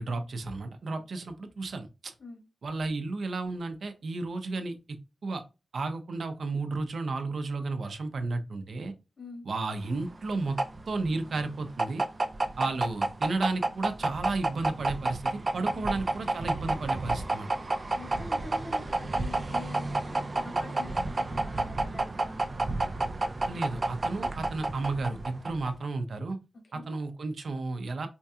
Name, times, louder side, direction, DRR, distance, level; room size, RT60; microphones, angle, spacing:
voice 1, 0.0-2.1 2.6-4.7 5.2-5.4 5.7-8.9 9.4-10.6 10.9-12.0 12.6-17.5 23.4-26.4 26.7-28.1, right 3 dB, 70° right, 7 dB, 0.6 m, -33 dB
sound 1, 9.8-25.8, right 2 dB, 35° right, 0.4 m, -31 dB
voice 2, 17.8-22.7 26.6-26.9, left 3 dB, 75° left, 2 dB, 1.3 m, -45 dB
4.4 x 2.7 x 2.3 m, 0.28 s
wide cardioid pair, 155°, 0 cm